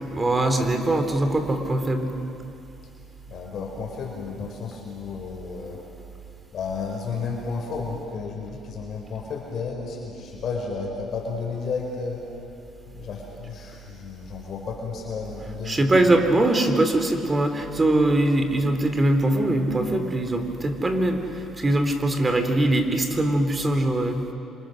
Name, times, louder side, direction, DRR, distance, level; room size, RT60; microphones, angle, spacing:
voice 1, 0.0-2.1 15.7-21.2 21.6-24.2, right 1 dB, 25° right, 7 dB, 3.3 m, -22 dB
voice 2, 3.3-5.8 6.5-12.5 12.9-16.2, left 4 dB, 60° left, 0 dB, 4.7 m, -32 dB
27.5 x 27.0 x 6.5 m, 2.7 s
supercardioid pair, 80°, 0 cm